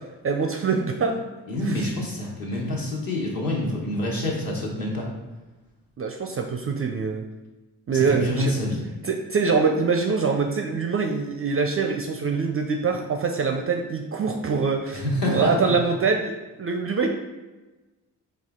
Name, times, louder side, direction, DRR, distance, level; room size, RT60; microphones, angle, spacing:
voice 1, 0.2-1.2 1.6-1.9 6.0-7.3 7.9-8.5 9.0-16.3 16.6-17.1, right 4 dB, 30° right, 3 dB, 0.4 m, -24 dB
voice 2, 1.5-5.1 7.9-8.8 14.9-15.5, left 1 dB, 45° left, -3 dB, 1.4 m, -27 dB
4.2 x 2.4 x 3.7 m, 1.2 s
hypercardioid pair, 40°, 46 cm